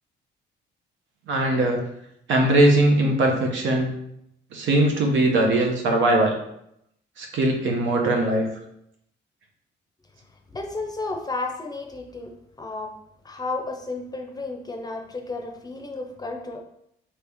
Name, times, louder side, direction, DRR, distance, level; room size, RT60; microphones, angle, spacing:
voice 1, 1.3-1.8 2.3-3.9 4.5-6.3 7.2-8.5, right 1 dB, 75° right, 1 dB, 0.8 m, -20 dB
voice 2, 10.5-12.3 12.6-12.9 13.2-16.6, left 3 dB, 20° left, 2 dB, 0.6 m, -32 dB
3.2 x 2.9 x 3.4 m, 0.76 s
cardioid pair, 90°, 20 cm